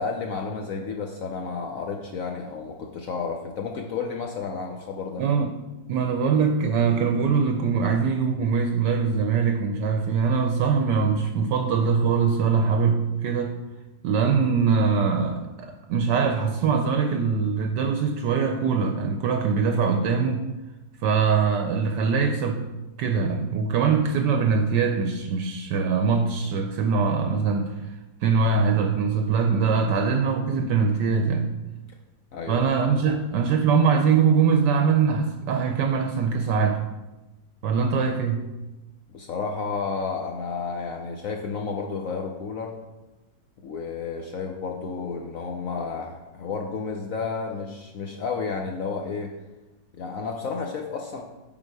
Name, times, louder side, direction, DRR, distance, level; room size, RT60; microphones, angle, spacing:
voice 1, 0.0-5.2 32.3-32.6 33.0-33.1 39.1-42.8 43.6-49.3 49.9-51.2, left 5 dB, 70° left, 2 dB, 0.8 m, -31 dB
voice 2, 5.2-5.5 5.9-13.6 14.0-20.4 21.0-22.6 23.0-27.8 28.2-31.5 32.5-36.8 37.6-38.5, right 5 dB, 75° right, 5 dB, 1.2 m, -22 dB
9.0 x 3.9 x 4.7 m, 1.1 s
omnidirectional pair, 2.0 m